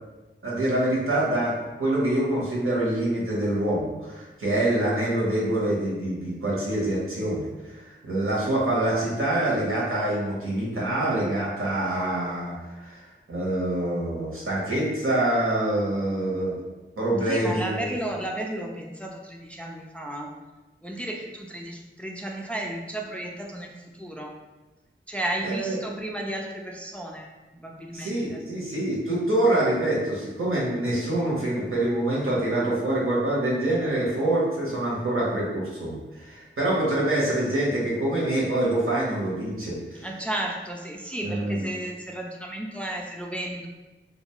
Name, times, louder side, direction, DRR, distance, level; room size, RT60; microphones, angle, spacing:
voice 1, 0.4-16.5 17.0-17.9 25.4-25.7 27.9-40.1 41.2-41.6, right 1 dB, 80° right, -6 dB, 0.9 m, -25 dB
voice 2, 17.3-20.3 20.8-24.3 25.1-27.3 27.5-28.4 40.0-43.7, right 1 dB, 5° left, 0 dB, 0.3 m, -33 dB
2.5 x 2.2 x 2.9 m, 1.1 s
wide cardioid pair, 50°, 21 cm